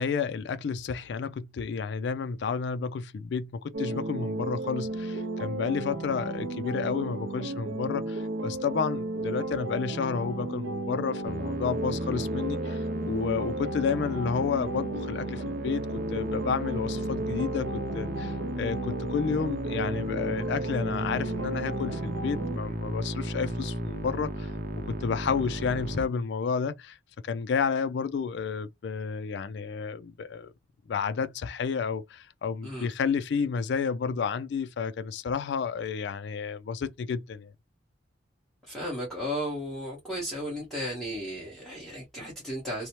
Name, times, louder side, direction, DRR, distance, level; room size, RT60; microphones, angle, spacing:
voice 1, 0.0-24.5 24.9-27.0 27.2-30.5 30.9-37.5, left 6 dB, 65° left, 0.3 m, -31 dB
sound 1, 3.7-22.6, right 2 dB, 90° right, 0.6 m, -34 dB
Musical instrument, 11.2-26.1, equal, 50° right, 0.6 m, -36 dB
voice 2, 38.7-42.9, equal, ahead, 0.9 m, -34 dB
3.0 x 2.0 x 2.8 m
head